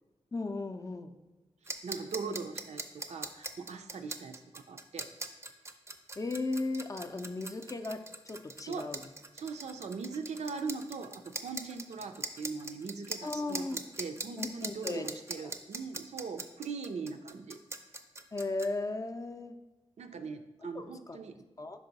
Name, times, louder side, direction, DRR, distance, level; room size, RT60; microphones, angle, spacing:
voice 1, 0.3-1.1 6.2-9.0 13.2-13.8 14.4-15.1 18.3-19.6 20.7-21.2 21.6-21.8, left 2 dB, 30° left, 7 dB, 0.4 m, -36 dB
sound 1, 1.6-18.7, right 2 dB, 25° right, 0.5 m, -41 dB
voice 2, 1.6-5.1 8.6-8.9 9.3-17.6 20.0-21.5, right 5 dB, 75° right, 7 dB, 0.4 m, -40 dB
5.2 x 4.7 x 3.9 m, 1.1 s
wide cardioid pair, 75°, 11 cm